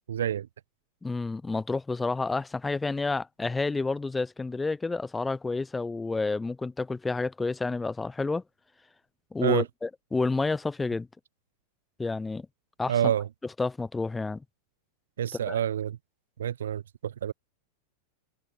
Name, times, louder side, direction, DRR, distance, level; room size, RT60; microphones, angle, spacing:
voice 1, 0.1-0.5 9.4-9.6 12.9-13.3 15.2-16.0 16.4-17.3, right 10 dB, 65° right, 0.6 m, -27 dB
voice 2, 1.0-8.4 9.3-11.1 12.0-12.5 12.8-13.1 13.6-14.4 15.5-15.6, left 3 dB, 10° left, 5.4 m, -30 dB
figure-of-eight pair, 90°, 0 cm